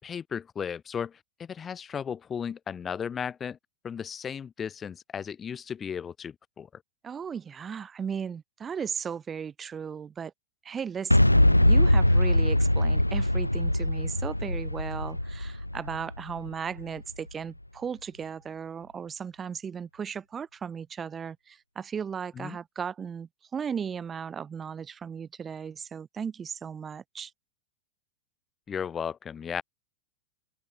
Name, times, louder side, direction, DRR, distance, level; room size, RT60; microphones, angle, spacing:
voice 1, 0.0-3.6 3.8-6.8 22.4-22.6 28.7-29.6, left 7 dB, 20° left, 5.3 m, -35 dB
voice 2, 7.0-10.3 10.6-27.3, right 7 dB, 20° right, 2.4 m, -36 dB
Boom, 11.1-17.0, left 1 dB, 85° left, 2.5 m, -22 dB
open air
figure-of-eight pair, 90°, 0 cm